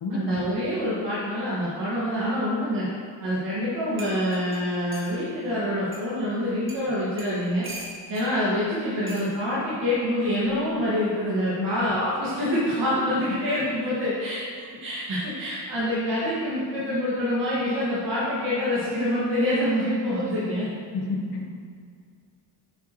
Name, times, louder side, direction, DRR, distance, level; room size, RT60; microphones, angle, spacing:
voice 1, 0.1-2.9 3.2-7.6 8.1-14.4 14.8-20.7, left 1 dB, 50° right, -10 dB, 2.6 m, -26 dB
sound 1, 3.6-3.7 4.0-5.1 5.9-6.0 6.7-6.8 7.2-8.3 9.1-9.3 10.4-10.7, right 2 dB, 30° right, 1.8 m, -41 dB
voice 2, 11.6-11.9 20.8-21.5, left 3 dB, 65° left, -2 dB, 1.7 m, -30 dB
11.0 x 9.2 x 3.4 m, 2.2 s
cardioid pair, 175°, 43 cm